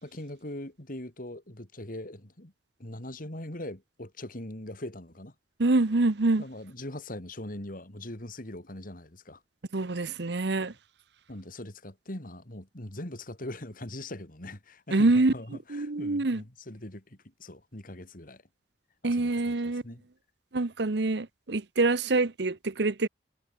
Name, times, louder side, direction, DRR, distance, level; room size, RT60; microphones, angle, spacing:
voice 1, 0.0-2.5 2.8-5.3 6.4-9.4 11.3-18.4 19.0-20.1, left 1 dB, 50° left, 3.7 m, -41 dB
voice 2, 5.6-6.4 9.7-10.7 14.9-15.3 15.7-16.4 19.0-19.8 20.5-23.1, right 2 dB, 70° right, 0.9 m, -25 dB
head